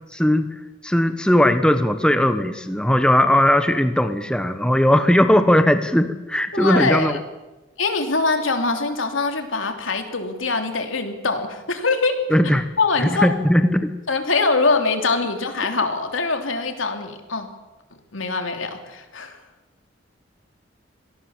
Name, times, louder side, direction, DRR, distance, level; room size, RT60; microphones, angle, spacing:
voice 1, 0.1-0.5 0.8-7.1 12.3-12.7 13.0-13.9, left 1 dB, 5° left, 9 dB, 1.0 m, -18 dB
voice 2, 6.5-7.2 7.8-12.2 12.8-13.3 14.1-17.5 18.1-19.4, left 3 dB, 85° left, 5 dB, 3.2 m, -23 dB
26.5 x 18.5 x 7.3 m, 1.1 s
head